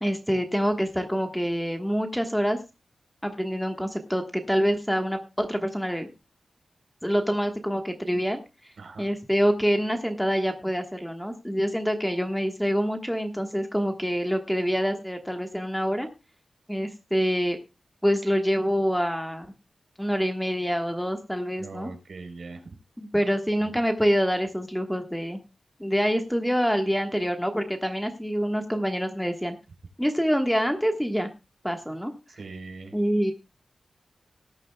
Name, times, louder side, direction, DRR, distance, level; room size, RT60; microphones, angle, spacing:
voice 1, 0.0-2.6 3.2-6.1 7.0-8.7 9.0-16.1 16.7-17.6 18.0-19.5 20.0-21.9 23.0-25.4 25.8-29.5 30.0-31.3 31.6-32.1 32.9-33.3, equal, ahead, 5 dB, 1.3 m, -26 dB
voice 2, 8.8-9.1 21.6-22.7 23.6-23.7 32.4-32.9, right 3 dB, 70° right, 4 dB, 3.7 m, -41 dB
18.5 x 10.0 x 2.2 m, 0.26 s
wide cardioid pair, 160°, 0 cm